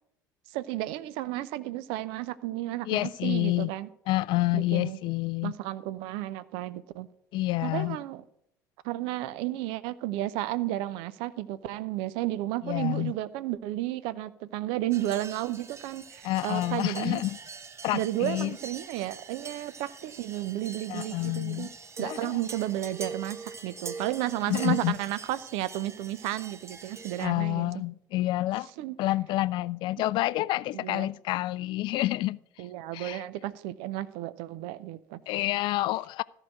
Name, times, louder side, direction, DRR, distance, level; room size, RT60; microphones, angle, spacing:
voice 1, 0.5-3.9 4.5-5.0 5.4-7.1 7.6-8.2 8.8-17.2 17.9-21.7 22.0-27.8 28.8-29.0 30.7-31.1 32.6-35.2, right 15 dB, 60° right, 0.6 m, -33 dB
voice 2, 2.9-3.7 4.1-5.5 7.3-8.0 12.6-13.1 16.2-17.4 17.8-18.6 20.9-21.7 22.0-22.3 24.5-24.9 27.2-28.7 29.0-32.4 32.9-33.2 35.3-36.2, left 17 dB, 55° left, 0.3 m, -28 dB
sound 1, 14.9-27.3, right 4 dB, 30° right, 0.9 m, -44 dB
14.0 x 4.9 x 7.6 m
figure-of-eight pair, 60°, 10 cm